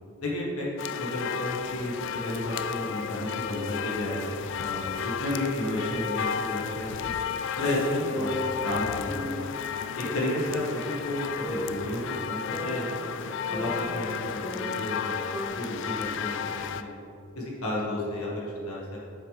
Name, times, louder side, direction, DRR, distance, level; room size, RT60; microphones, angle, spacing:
voice 1, 0.2-0.7 0.9-7.1 7.5-9.4 9.9-12.9 13.5-15.2 15.5-16.9 17.3-19.0, left 1 dB, 90° left, -5 dB, 1.6 m, -32 dB
sound 1, 0.8-16.8, left 7 dB, 60° left, 0.3 m, -33 dB
sound 2, 8.1-9.6 10.0-10.5 11.4-13.1 13.5-15.1 15.3-15.5, equal, ahead, 0.7 m, -36 dB
7.7 x 6.4 x 3.4 m, 2.8 s
head